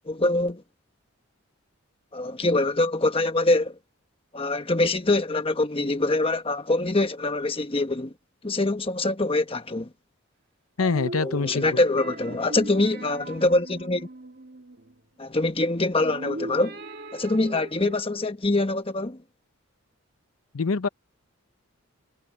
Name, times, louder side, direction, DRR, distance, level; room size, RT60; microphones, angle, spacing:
voice 1, 0.1-0.6 2.1-3.8 4.3-8.1 8.4-9.9 11.2-14.1 15.2-16.8 17.1-19.2, left 2 dB, 25° left, 1.2 m, -24 dB
voice 2, 10.8-11.8 20.5-20.9, left 4 dB, 85° left, 0.7 m, -25 dB
sound 1, 10.8-15.0 16.0-18.0, right 1 dB, 50° right, 2.3 m, -38 dB
head